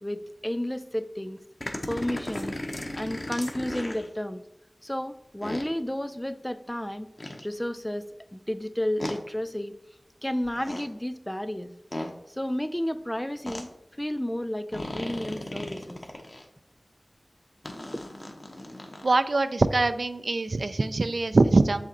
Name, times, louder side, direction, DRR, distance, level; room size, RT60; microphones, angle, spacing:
voice 1, 0.0-1.4 1.9-2.6 2.9-4.4 4.8-7.1 7.4-8.0 8.3-9.8 10.2-11.7 12.3-13.7 14.0-16.0 17.9-18.0, left 1 dB, 10° left, 10 dB, 0.4 m, -32 dB
sound 1, 1.6-4.1 5.4-5.7 7.2-7.4 9.0-9.2 10.4-10.9 11.9-12.1 13.5-13.6 14.7-16.4 17.6-19.2, left 1 dB, 50° left, 0.8 m, -36 dB
voice 2, 19.0-21.9, right 3 dB, 75° right, 10 dB, 0.3 m, -23 dB
7.2 x 4.2 x 3.8 m, 0.83 s
wide cardioid pair, 65°, 0 cm